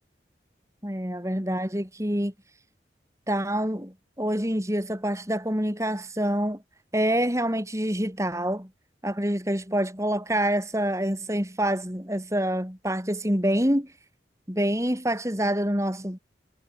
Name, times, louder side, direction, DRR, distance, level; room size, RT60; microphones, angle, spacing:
voice 1, 0.8-2.3 3.3-6.6 6.9-8.7 9.0-13.9 14.5-16.2, right 1 dB, 15° right, 7.5 m, -26 dB
head